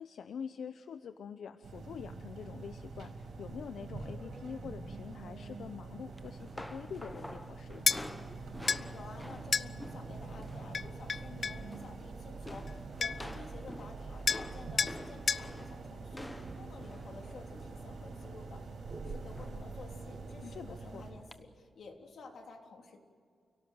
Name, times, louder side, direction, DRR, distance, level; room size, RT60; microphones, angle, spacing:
voice 1, 0.0-8.1 20.4-21.0, left 7 dB, 90° left, 10 dB, 0.7 m, -45 dB
sound 1, 1.6-21.1, right 3 dB, 80° right, 5.5 m, -45 dB
sound 2, 6.2-10.7 11.0-11.3 11.6-12.1 12.5-18.5 19.3-19.7 20.1-20.2 21.3-21.4, left 1 dB, 10° left, 1.0 m, -49 dB
sound 3, 7.9-8.0 8.7-8.8 9.5-9.7 10.7-11.6 12.7-12.8 13.0-13.3 14.3-14.5 14.8-15.0 15.3-15.5, left 5 dB, 45° left, 0.5 m, -30 dB
voice 2, 8.6-23.0, left 4 dB, 65° left, 2 dB, 3.5 m, -51 dB
29.5 x 17.5 x 7.8 m, 2.2 s
wide cardioid pair, 135°, 0 cm